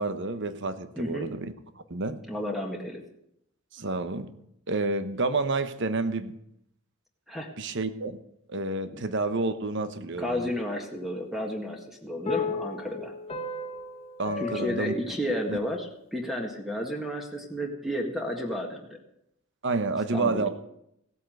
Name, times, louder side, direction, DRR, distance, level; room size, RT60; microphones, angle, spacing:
voice 1, 0.0-1.5 1.9-2.2 3.7-4.3 4.7-6.4 7.6-8.2 8.5-10.5 14.2-14.9 15.5-15.6 19.6-20.5, right 3 dB, 55° right, 11 dB, 1.0 m, -29 dB
voice 2, 0.9-1.3 2.3-3.0 7.3-7.5 8.9-9.0 10.2-13.1 14.4-19.0 20.1-20.5, equal, ahead, 1 dB, 1.7 m, -32 dB
sound 1, 12.2-15.8, left 3 dB, 25° left, 1.5 m, -34 dB
16.5 x 8.3 x 7.9 m, 0.77 s
head